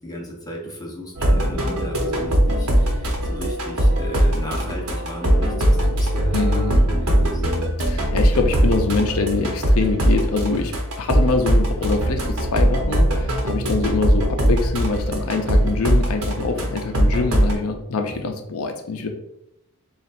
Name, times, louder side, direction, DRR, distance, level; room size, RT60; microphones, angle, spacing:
voice 1, 0.0-6.4 6.9-7.4 18.1-18.3, equal, 15° left, -2 dB, 0.9 m, -35 dB
sound 1, 1.2-17.5, right 1 dB, 75° right, 1.0 m, -20 dB
voice 2, 6.3-6.8 7.8-19.1, left 3 dB, 70° left, 5 dB, 0.5 m, -24 dB
6.9 x 2.4 x 2.5 m, 0.84 s
head